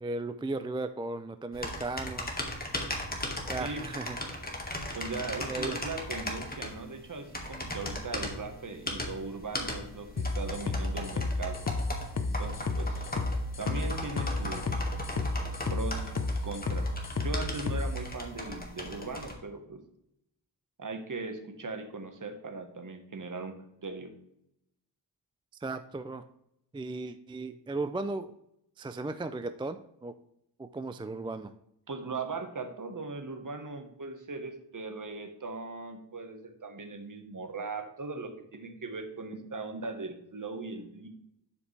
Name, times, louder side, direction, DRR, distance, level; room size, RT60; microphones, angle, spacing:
voice 1, 0.0-2.3 3.5-4.2 5.5-5.8 25.6-26.3 26.7-28.3 28.8-30.1 30.6-31.5, right 2 dB, 15° right, 10 dB, 0.3 m, -36 dB
sound 1, 1.5-19.3, left 1 dB, 20° left, 1.7 m, -38 dB
voice 2, 4.9-11.6 12.4-13.1 13.6-14.7 15.1-15.4 15.7-16.1 16.4-16.9 17.2-19.8 20.8-24.1 31.9-41.1, right 3 dB, 45° right, 6 dB, 1.3 m, -39 dB
sound 2, 10.2-17.9, left 3 dB, 40° left, 0.8 m, -31 dB
11.0 x 5.1 x 3.3 m, 0.78 s
cardioid pair, 70°, 43 cm